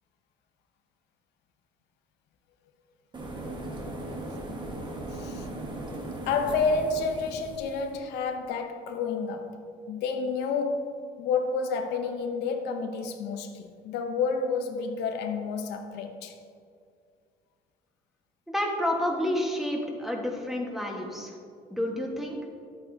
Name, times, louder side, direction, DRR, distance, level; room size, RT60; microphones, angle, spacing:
sound 1, 3.1-7.9, right 1 dB, 25° right, 1.4 m, -38 dB
voice 1, 5.1-5.5 6.2-9.6 9.9-16.4, left 4 dB, 85° left, 0.8 m, -30 dB
voice 2, 18.5-21.4 21.7-22.4, left 1 dB, ahead, 1.4 m, -29 dB
11.0 x 8.3 x 2.7 m
cardioid pair, 110°, 17 cm